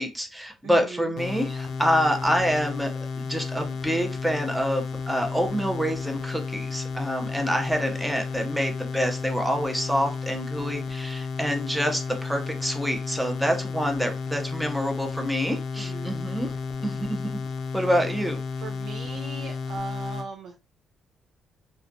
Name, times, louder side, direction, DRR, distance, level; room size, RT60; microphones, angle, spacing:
voice 1, 0.0-2.9 3.2-16.5 16.8-17.4 17.7-18.4, equal, 5° right, 3 dB, 0.6 m, -27 dB
voice 2, 0.6-1.1 15.7-16.2 18.0-18.1 18.6-20.5, right 3 dB, 85° right, 2 dB, 0.4 m, -38 dB
sound 1, 1.2-20.3, left 4 dB, 70° left, 0.4 m, -32 dB
2.4 x 2.2 x 2.6 m, 0.28 s
cardioid pair, 90°, 0 cm